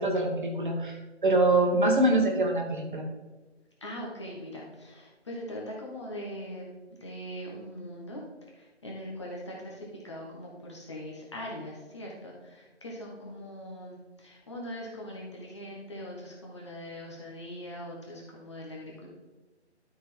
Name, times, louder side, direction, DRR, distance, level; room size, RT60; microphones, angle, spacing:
voice 1, 0.0-3.0, right 2 dB, 45° right, 2 dB, 1.5 m, -25 dB
voice 2, 3.8-6.7 7.0-8.2 8.5-19.1, equal, 25° left, -3 dB, 1.2 m, -41 dB
12.5 x 4.3 x 3.7 m, 1.2 s
figure-of-eight pair, 165°, 35 cm